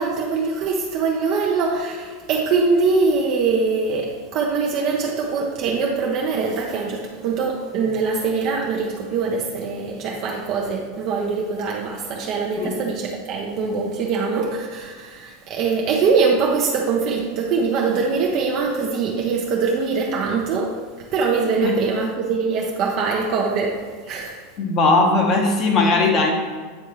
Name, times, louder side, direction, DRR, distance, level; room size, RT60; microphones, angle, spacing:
voice 1, 0.0-20.7 21.1-23.7 24.1-24.4, right 4 dB, 50° right, -1 dB, 0.7 m, -23 dB
voice 2, 24.6-26.3, left 3 dB, 40° left, 2 dB, 1.1 m, -18 dB
8.8 x 3.5 x 3.1 m, 1.5 s
supercardioid pair, 130°, 0 cm